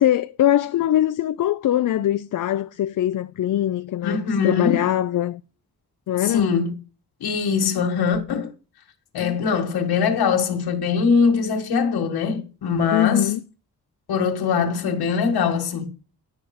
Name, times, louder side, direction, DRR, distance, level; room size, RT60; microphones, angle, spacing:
voice 1, 0.0-5.4 6.1-6.5 9.2-9.4 12.9-13.4, left 12 dB, 55° left, 0.5 m, -22 dB
voice 2, 4.0-4.9 6.2-6.7 7.2-8.5 9.1-13.3 14.1-15.9, left 6 dB, 90° left, 1.6 m, -22 dB
10.0 x 5.8 x 4.7 m
cardioid pair, 70°, 38 cm